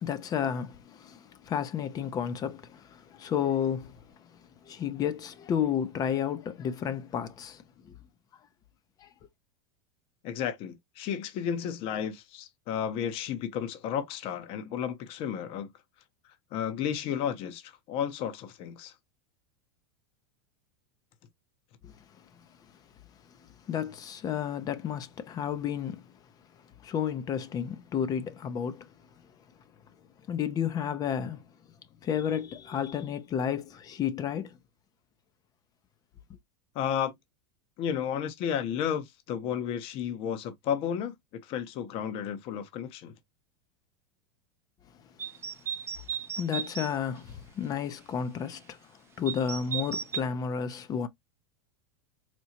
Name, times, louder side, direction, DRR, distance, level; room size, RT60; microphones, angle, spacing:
voice 1, 0.0-3.9 4.7-7.6 9.0-9.1 21.8-21.9 23.7-26.0 26.8-28.9 30.3-31.4 32.0-34.5 46.4-48.8 49.2-51.1, left 8 dB, 30° left, 0.6 m, -31 dB
voice 2, 10.2-15.7 16.5-18.9 36.7-37.1 37.8-41.1 41.4-43.1, left 8 dB, 45° left, 0.8 m, -32 dB
sound 1, 45.2-46.9 49.3-50.2, right 8 dB, 20° right, 0.3 m, -35 dB
4.3 x 2.3 x 2.8 m
supercardioid pair, 125°, 13 cm